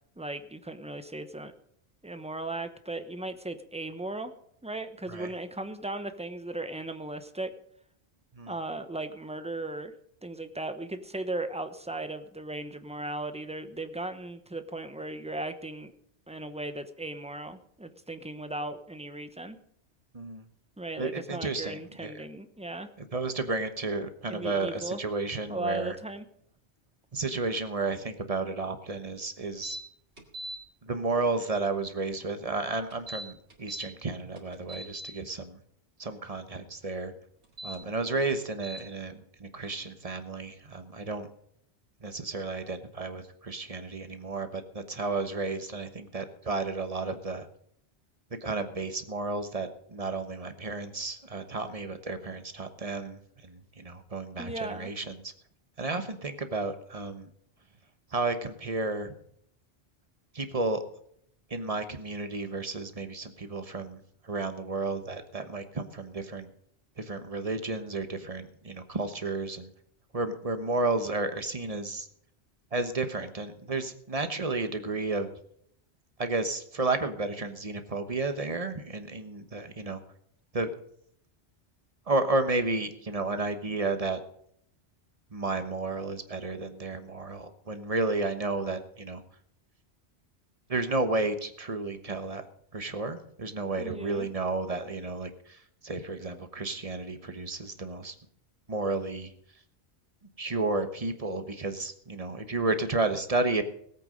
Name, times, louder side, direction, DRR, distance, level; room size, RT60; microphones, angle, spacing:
voice 1, 0.2-1.5 2.0-4.3 4.6-7.5 8.5-9.9 10.2-15.9 16.3-19.6 20.8-22.9 24.3-25.0 25.5-26.2 54.4-54.9 93.8-94.3, right 2 dB, 5° right, 9 dB, 0.9 m, -37 dB
voice 2, 21.0-22.2 23.1-26.0 27.1-29.8 30.8-35.6 36.0-37.1 37.6-41.3 42.0-47.5 48.4-55.3 55.8-57.3 58.1-59.1 60.3-60.8 61.5-66.5 67.0-69.7 70.1-72.1 72.7-75.3 76.2-80.0 80.5-80.7 82.1-84.2 85.3-89.2 90.7-92.4 92.7-98.1 98.7-99.3 100.4-103.6, right 3 dB, 35° right, 9 dB, 1.2 m, -32 dB
sound 1, 29.6-29.8 30.2-30.6 32.9-33.9 34.4-35.1 37.4-37.8 38.6-38.8, right 1 dB, 80° right, 2.7 m, -40 dB
18.5 x 8.4 x 5.2 m, 0.68 s
omnidirectional pair, 1.1 m